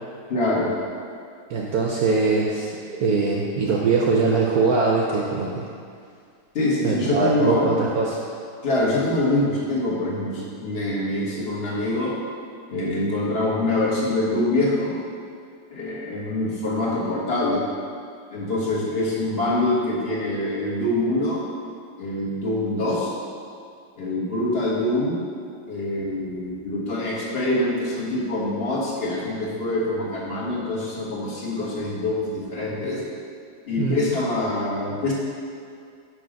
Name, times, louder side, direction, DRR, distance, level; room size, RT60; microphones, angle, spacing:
voice 1, 0.3-0.7 6.5-7.8 8.6-12.1 12.7-15.0 15.7-17.6 18.3-21.4 22.0-23.1 24.0-25.3 25.7-33.0 33.7-35.1, left 1 dB, 35° left, -5 dB, 1.4 m, -24 dB
voice 2, 1.5-2.7 3.0-5.7 6.8-8.2 33.8-34.0, right 4 dB, 65° right, -1 dB, 0.9 m, -22 dB
6.0 x 5.4 x 5.1 m, 2.2 s
omnidirectional pair, 2.1 m